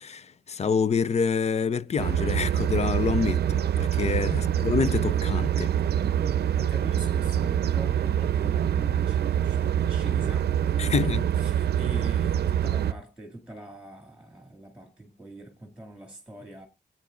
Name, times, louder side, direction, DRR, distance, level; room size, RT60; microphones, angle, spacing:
voice 1, 0.0-5.7 10.8-11.3, left 5 dB, 35° left, 0.5 m, -27 dB
sound 1, 2.0-12.9, right 10 dB, 60° right, 0.6 m, -25 dB
voice 2, 4.2-4.7 6.2-16.7, right 1 dB, 5° right, 2.2 m, -43 dB
18.5 x 8.9 x 2.4 m
wide cardioid pair, 170°, 18 cm